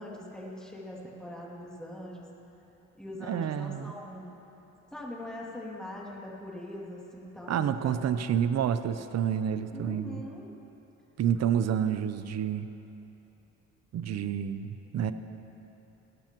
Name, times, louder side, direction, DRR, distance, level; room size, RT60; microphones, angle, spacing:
voice 1, 0.0-2.3 3.0-4.3 4.9-8.1 9.7-10.5, left 1 dB, ahead, -4 dB, 2.6 m, -42 dB
voice 2, 3.2-3.9 7.5-10.2 11.2-12.7 13.9-15.1, right 8 dB, 60° right, 11 dB, 0.7 m, -29 dB
18.5 x 13.5 x 3.0 m, 3.0 s
cardioid pair, 90°, 30 cm